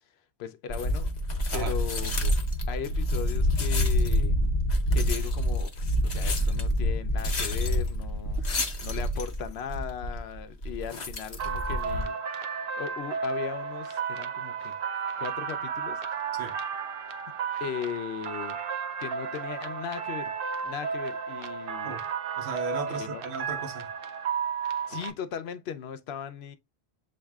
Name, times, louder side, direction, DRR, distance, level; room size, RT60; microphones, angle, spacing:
voice 1, 0.4-1.1 1.5-2.3 2.7-4.4 4.9-8.4 8.8-12.2 12.5-14.8 15.2-16.0 17.6-18.6 19.0-20.3 20.6-22.0 22.9-23.2 24.9-26.6, left 8 dB, 80° left, 0.8 m, -37 dB
sound 1, 0.7-12.1, left 1 dB, 45° left, 0.8 m, -27 dB
sound 2, 11.4-25.1, right 6 dB, 65° right, 0.7 m, -33 dB
voice 2, 22.4-23.9, right 4 dB, 85° right, 1.0 m, -36 dB
7.4 x 2.6 x 2.3 m
omnidirectional pair, 1.1 m